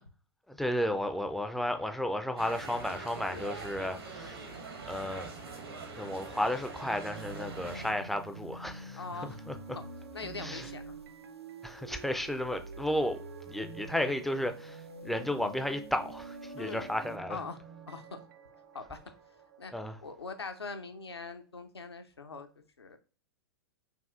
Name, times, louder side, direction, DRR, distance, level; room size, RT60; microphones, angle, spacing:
voice 1, 0.5-4.5 4.9-5.3 5.9-9.5 10.4-10.7 11.6-13.2 13.5-17.4 19.7-20.0, left 1 dB, ahead, 0.3 m, -33 dB
sound 1, 2.4-7.9, right 4 dB, 70° right, 1.0 m, -43 dB
sound 2, 5.0-21.4, right 6 dB, 55° right, 0.7 m, -53 dB
sound 3, 7.2-17.2, right 2 dB, 90° right, 0.5 m, -46 dB
voice 2, 8.9-9.4 9.7-9.8 10.1-11.0 16.6-16.9 17.3-17.6 17.9-18.2 18.7-19.0 19.6-19.7 20.0-22.5 22.8-23.0, left 4 dB, 80° left, 0.6 m, -42 dB
5.3 x 2.3 x 2.4 m
figure-of-eight pair, 100°, 13 cm